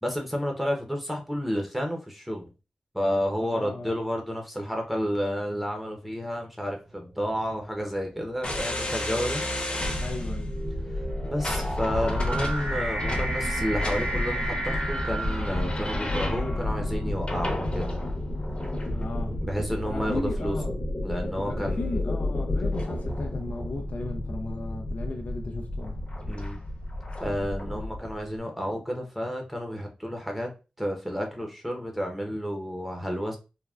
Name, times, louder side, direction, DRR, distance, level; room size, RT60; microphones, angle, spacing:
voice 1, 0.0-2.5 2.9-9.4 11.2-18.0 19.4-20.6 21.0-22.0 26.3-26.6 27.2-30.5 30.8-33.4, equal, 5° right, 0.7 m, -31 dB
voice 2, 3.4-4.0 10.0-10.5 18.9-19.4 19.9-20.8 21.5-26.0, left 2 dB, 70° left, 0.4 m, -35 dB
sound 1, 6.8-7.2 8.0-16.2, right 1 dB, 45° right, 1.0 m, -34 dB
sound 2, 8.4-28.1, left 1 dB, 40° left, 0.9 m, -31 dB
3.4 x 2.1 x 2.4 m
cardioid pair, 55°, 3 cm